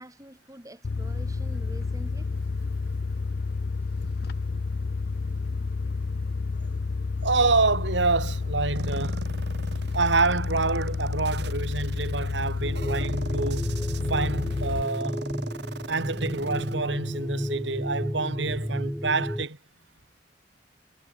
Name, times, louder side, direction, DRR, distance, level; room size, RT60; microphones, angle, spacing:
voice 1, 0.0-2.3, equal, 20° right, 7.7 m, -46 dB
sound 1, 0.8-14.8, left 4 dB, 55° left, 0.5 m, -30 dB
voice 2, 7.2-9.3 9.9-13.6 14.1-15.3 15.9-19.6, right 3 dB, 80° right, 2.2 m, -27 dB
sound 2, 8.8-16.8, right 3 dB, 65° right, 1.2 m, -40 dB
sound 3, 12.6-19.4, equal, ahead, 2.4 m, -32 dB
head